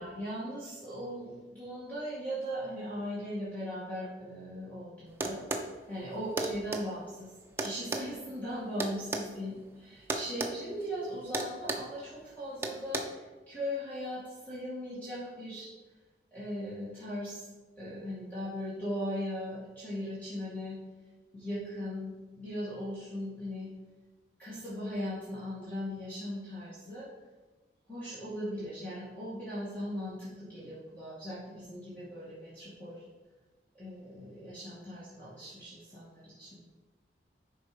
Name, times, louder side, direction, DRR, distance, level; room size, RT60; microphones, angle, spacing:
voice 1, 0.0-5.4 5.9-7.3 7.6-15.7 16.3-17.5 17.8-20.8 21.3-23.7 24.4-27.1 27.9-33.1 33.7-36.6, equal, 10° left, -11 dB, 2.2 m, -38 dB
sound 1, 5.2-5.7 6.4-6.8 7.6-9.3 10.1-10.5 10.8-11.0 11.3-11.9 12.6-13.0, right 2 dB, 15° right, 0.7 m, -33 dB
10.5 x 4.5 x 5.1 m, 1.3 s
head